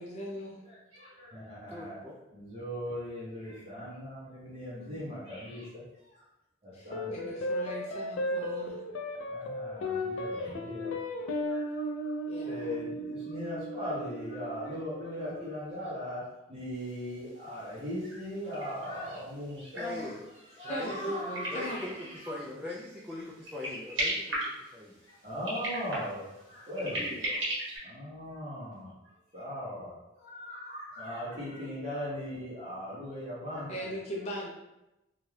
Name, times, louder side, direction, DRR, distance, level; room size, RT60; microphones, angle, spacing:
voice 1, 0.0-0.6 4.7-5.1 6.7-8.8 12.3-12.8 20.7-21.8 33.7-34.5, equal, 35° left, -4 dB, 0.6 m, -39 dB
voice 2, 0.6-2.0 2.3-6.2 6.6-7.4 9.2-10.9 11.5-12.1 12.4-16.2 16.5-20.1 20.6-22.4 25.1-27.1 27.8-28.9 29.3-33.9, equal, 30° right, -10 dB, 1.0 m, -39 dB
voice 3, 1.7-2.2 19.7-20.3 20.6-21.2 21.5-25.0 26.8-27.4 28.8-28.9, left 2 dB, 5° right, -6 dB, 0.3 m, -41 dB
sound 1, 6.9-15.5, left 1 dB, 85° left, 0.4 m, -35 dB
sound 2, 17.0-17.1 17.3-17.4 17.8-22.3 22.8-23.1 23.4-25.0 25.3-27.8, right 1 dB, 65° right, 1.1 m, -35 dB
2.7 x 2.3 x 3.2 m, 0.93 s
head